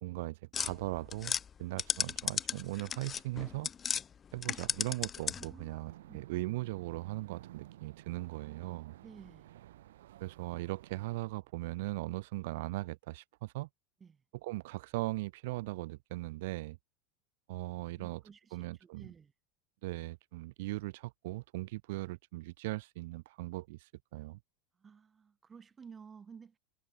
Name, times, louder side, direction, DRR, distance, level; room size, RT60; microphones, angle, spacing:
voice 1, 0.0-3.7 4.3-8.9 10.2-13.7 14.4-16.8 17.5-18.2 18.5-19.1 19.8-24.4, right 20 dB, 65° right, 0.7 m, -39 dB
sound 1, 0.5-4.0 4.4-5.6, left 7 dB, 20° left, 0.4 m, -35 dB
voice 2, 5.3-6.2 9.0-9.5 14.0-14.2 18.0-19.3 24.8-26.6, right 6 dB, 15° right, 2.5 m, -54 dB
sound 2, 5.9-11.2, right 14 dB, 90° right, 2.7 m, -53 dB
supercardioid pair, 155°, 0 cm